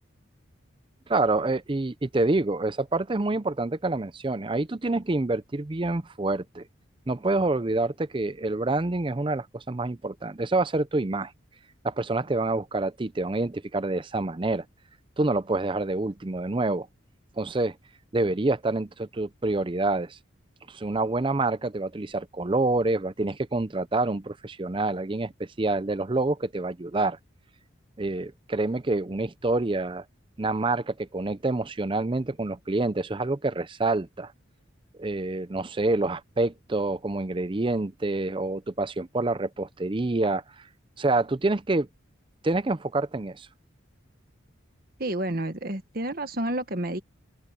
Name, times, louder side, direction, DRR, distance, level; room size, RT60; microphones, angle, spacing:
voice 1, 1.1-6.6 7.1-11.3 11.8-14.7 15.2-16.9 17.4-17.8 18.1-20.2 20.7-27.2 28.0-30.0 30.4-34.3 35.0-40.4 41.0-41.9 42.4-43.5, right 2 dB, 25° right, 0.5 m, -27 dB
voice 2, 45.0-47.0, right 1 dB, 45° right, 1.6 m, -30 dB
head